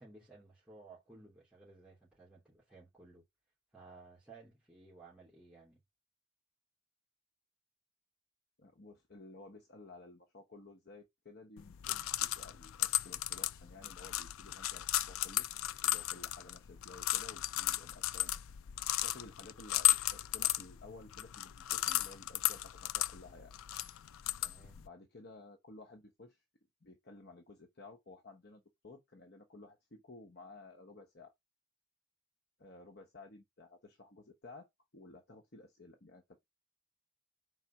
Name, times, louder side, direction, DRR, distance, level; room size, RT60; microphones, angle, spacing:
voice 1, 0.0-3.2 3.7-5.8 24.4-24.8, right 3 dB, 5° right, 2.9 m, -57 dB
voice 2, 8.6-15.5 15.8-23.5 24.8-26.4 26.8-31.3 32.6-36.4, left 2 dB, 50° left, 1.0 m, -55 dB
sound 1, 11.6-24.9, left 14 dB, 85° left, 0.4 m, -35 dB
4.9 x 3.9 x 5.8 m
head